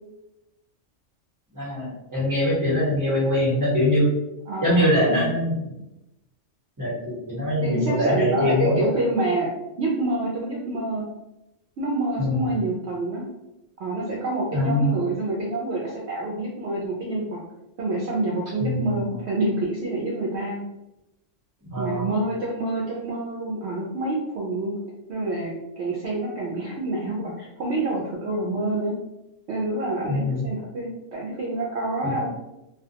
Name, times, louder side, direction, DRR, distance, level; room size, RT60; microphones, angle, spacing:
voice 1, 1.5-4.1 4.6-5.5 6.8-8.7 12.2-12.5 14.5-15.0 18.6-19.1 21.7-22.1 30.1-30.5 32.0-32.1, left 1 dB, 15° right, -8 dB, 1.0 m, -23 dB
voice 2, 4.5-4.8 5.1-5.3 7.6-9.5 9.8-11.1 11.8-13.2 13.8-17.4 17.8-20.6 21.7-24.8 25.1-28.9 29.5-32.3, right 2 dB, 65° right, -4 dB, 0.7 m, -27 dB
2.3 x 2.2 x 2.7 m, 0.93 s
omnidirectional pair, 1.3 m